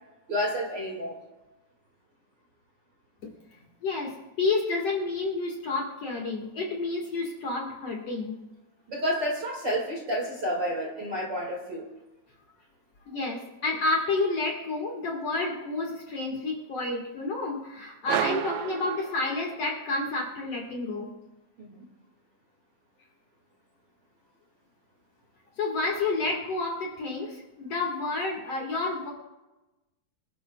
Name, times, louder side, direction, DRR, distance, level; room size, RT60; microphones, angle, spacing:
voice 1, 0.3-1.2 8.9-11.9 21.6-21.8, equal, 35° right, -2 dB, 2.2 m, -30 dB
voice 2, 3.8-8.4 13.1-21.1 25.6-29.1, left 3 dB, 50° left, 0 dB, 2.4 m, -30 dB
sound 1, 18.1-19.8, right 12 dB, 85° right, 2.4 m, -31 dB
25.0 x 11.5 x 2.3 m, 1.0 s
omnidirectional pair, 4.2 m